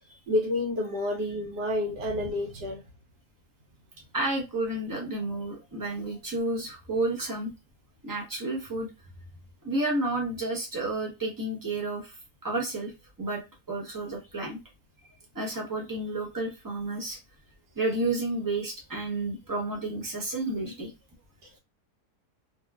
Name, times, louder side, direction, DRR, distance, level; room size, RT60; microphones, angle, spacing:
voice 1, 0.3-2.8, left 1 dB, 80° right, 0 dB, 1.2 m, -29 dB
voice 2, 4.1-7.5 8.0-8.9 9.6-12.2 12.4-12.9 13.2-13.4 13.7-14.6 15.3-17.2 17.8-20.9, right 2 dB, 20° right, 0 dB, 0.5 m, -31 dB
2.9 x 2.4 x 2.3 m, 0.25 s
omnidirectional pair, 1.8 m